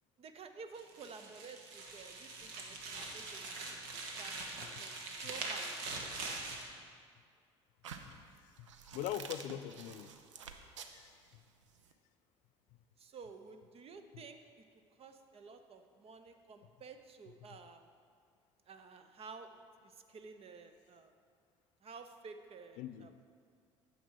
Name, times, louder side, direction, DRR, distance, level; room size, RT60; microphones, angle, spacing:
voice 1, 0.2-3.5 3.9-4.9 5.2-5.8 13.0-14.6 15.0-17.9 18.7-19.5 19.8-21.1 21.8-23.2, right 5 dB, 40° right, 8 dB, 0.8 m, -52 dB
sound 1, 0.7-6.7, right 3 dB, 65° right, 1.3 m, -43 dB
sound 2, 7.8-11.9, right 6 dB, 80° right, 0.6 m, -50 dB
voice 2, 8.6-10.1 10.9-11.1 22.8-23.1, left 11 dB, 55° left, 12 dB, 0.4 m, -42 dB
9.2 x 7.2 x 4.7 m, 2.1 s
figure-of-eight pair, 60°, 15 cm